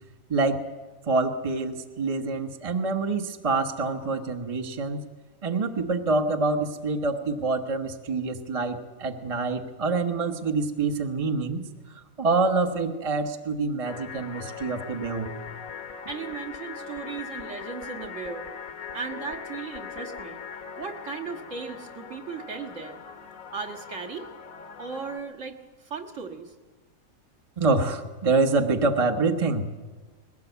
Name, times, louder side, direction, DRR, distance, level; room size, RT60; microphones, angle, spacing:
voice 1, 0.3-0.6 1.1-5.0 5.4-15.3 27.6-29.7, right 3 dB, 30° right, 5 dB, 0.9 m, -26 dB
sound 1, 13.8-25.2, left 6 dB, 70° left, 1.4 m, -40 dB
voice 2, 16.1-18.5 18.9-20.4 20.8-23.0 23.5-24.3 24.8-26.5, right 5 dB, 60° right, 1 dB, 2.0 m, -36 dB
21.0 x 17.0 x 8.1 m, 1.3 s
omnidirectional pair, 1.5 m